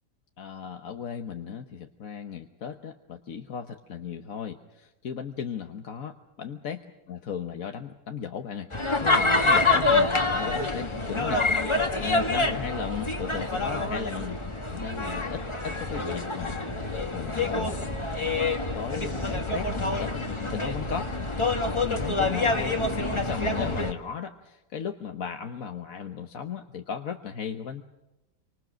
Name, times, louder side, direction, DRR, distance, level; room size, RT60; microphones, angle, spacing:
voice 1, 0.4-6.8 7.1-14.4 14.7-18.3 18.7-21.1 21.8-27.8, left 7 dB, 55° left, 5 dB, 1.4 m, -36 dB
sound 1, 8.7-23.9, left 2 dB, 20° left, 1.5 m, -27 dB
28.5 x 25.0 x 6.4 m, 0.98 s
omnidirectional pair, 1.8 m